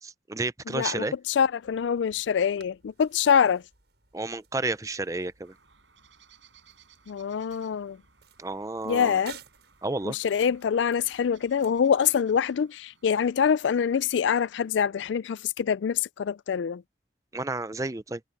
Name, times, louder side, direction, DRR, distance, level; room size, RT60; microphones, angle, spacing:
voice 1, 0.0-1.1 4.1-5.5 8.4-9.2 9.8-10.2 17.3-18.2, right 2 dB, 15° right, 0.5 m, -31 dB
voice 2, 0.7-1.0 1.4-3.6 7.1-8.0 8.9-9.4 10.2-16.8, left 7 dB, 80° left, 0.4 m, -25 dB
sound 1, 1.6-12.1, right 6 dB, 65° right, 6.6 m, -55 dB
sound 2, 5.4-14.9, right 7 dB, 85° right, 6.7 m, -62 dB
head